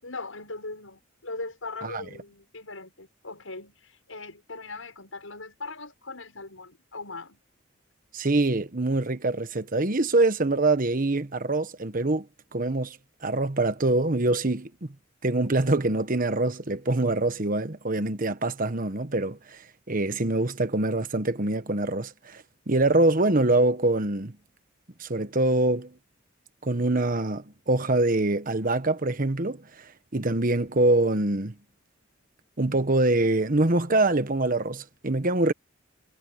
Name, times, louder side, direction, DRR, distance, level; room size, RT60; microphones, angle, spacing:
voice 1, 0.0-7.4, left 3 dB, 85° left, 6.8 m, -40 dB
voice 2, 8.1-12.3 12.5-13.0 13.2-14.9 15.2-19.6 19.9-24.4 25.0-25.9 26.6-29.9 30.1-31.5 32.6-35.5, right 2 dB, 45° right, 1.2 m, -24 dB
head